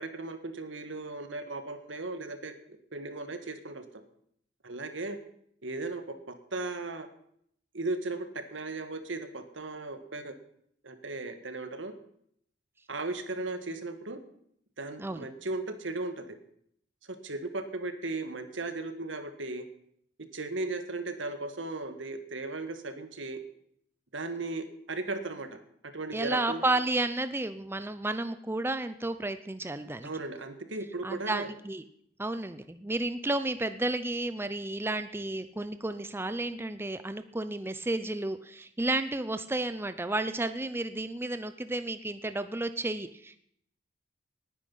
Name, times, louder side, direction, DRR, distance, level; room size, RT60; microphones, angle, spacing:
voice 1, 0.0-2.5 2.9-3.8 4.6-5.2 5.6-7.1 7.7-10.4 10.8-11.9 12.9-14.2 14.8-16.2 17.1-19.7 20.3-23.4 24.1-26.6 30.0-31.5, right 2 dB, 75° right, 9 dB, 1.7 m, -36 dB
voice 2, 26.1-30.1 31.0-31.8 32.2-43.4, right 2 dB, 10° right, 11 dB, 0.6 m, -32 dB
19.0 x 10.0 x 5.6 m, 0.69 s
head